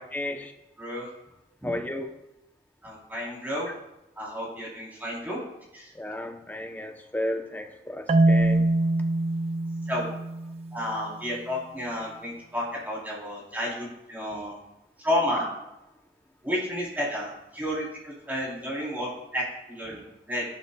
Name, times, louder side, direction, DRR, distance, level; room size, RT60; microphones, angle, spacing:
voice 1, 0.1-0.5 1.6-2.1 6.0-8.6, left 1 dB, 10° left, 4 dB, 0.7 m, -33 dB
voice 2, 2.8-3.7 4.2-5.4 5.7-5.9 9.9-10.1 10.7-14.6 15.0-15.4 16.4-20.4, left 1 dB, 10° right, -5 dB, 3.3 m, -31 dB
Marimba xylophone, 8.1-11.1, right 2 dB, 35° right, 0.4 m, -24 dB
12.5 x 11.5 x 2.2 m, 0.93 s
head